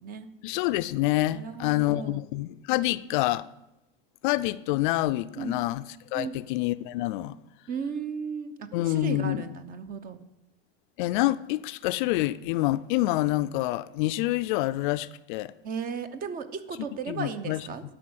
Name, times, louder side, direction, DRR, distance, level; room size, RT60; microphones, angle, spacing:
voice 1, 0.4-3.5 4.2-7.4 8.7-9.5 11.0-15.5 16.7-17.7, left 17 dB, 55° left, 0.5 m, -27 dB
voice 2, 1.3-2.2 5.4-5.6 6.1-6.3 7.7-10.2 15.6-17.8, right 6 dB, 30° right, 0.8 m, -35 dB
11.5 x 6.4 x 7.8 m
supercardioid pair, 150°, 29 cm